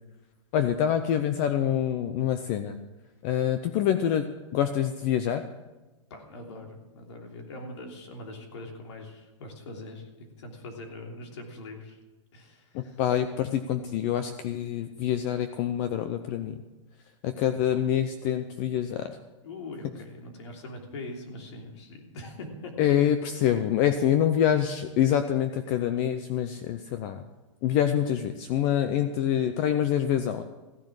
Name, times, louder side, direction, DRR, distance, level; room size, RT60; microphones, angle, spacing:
voice 1, 0.5-2.8 3.2-5.4 12.7-16.6 17.2-19.2 22.8-27.2 27.6-30.4, left 10 dB, 30° left, 9 dB, 0.6 m, -26 dB
voice 2, 6.1-12.0 12.3-13.0 17.5-17.8 19.4-22.7, left 2 dB, 60° left, 2 dB, 3.2 m, -42 dB
15.0 x 10.5 x 6.5 m, 1.1 s
supercardioid pair, 175°, 16 cm